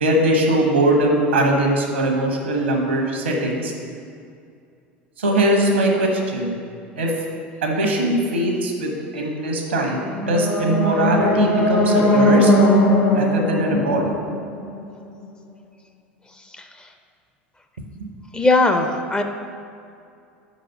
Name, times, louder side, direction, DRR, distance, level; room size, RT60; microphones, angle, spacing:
voice 1, 0.0-3.7 5.2-6.6 6.9-7.2 7.6-12.5 13.1-14.1 17.8-18.1, right 1 dB, 80° right, 1 dB, 1.0 m, -21 dB
sound 1, 9.9-15.0, left 1 dB, 55° left, 1.3 m, -19 dB
voice 2, 18.3-19.2, left 2 dB, 15° left, 5 dB, 0.5 m, -18 dB
5.1 x 4.1 x 5.6 m, 2.4 s
figure-of-eight pair, 75°, 6 cm